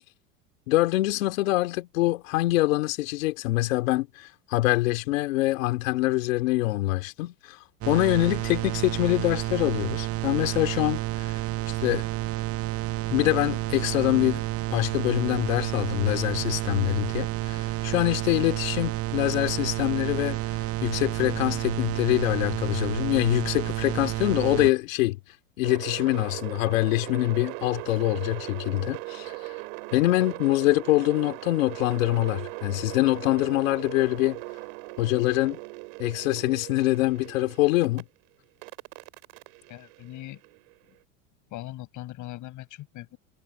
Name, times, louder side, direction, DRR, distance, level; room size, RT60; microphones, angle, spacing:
voice 1, 0.7-11.4 11.7-12.0 13.1-14.4 14.7-25.2 25.6-29.5 29.9-34.4 35.0-35.6 36.0-38.0, left 18 dB, 75° left, 2.8 m, -25 dB
sound 1, 7.8-24.7, right 17 dB, 35° right, 0.8 m, -30 dB
sound 2, 25.6-38.0 38.6-40.7, right 35 dB, 65° right, 6.7 m, -39 dB
voice 2, 39.7-40.4 41.5-43.2, left 16 dB, 50° left, 7.9 m, -40 dB
hypercardioid pair, 105°, 40 cm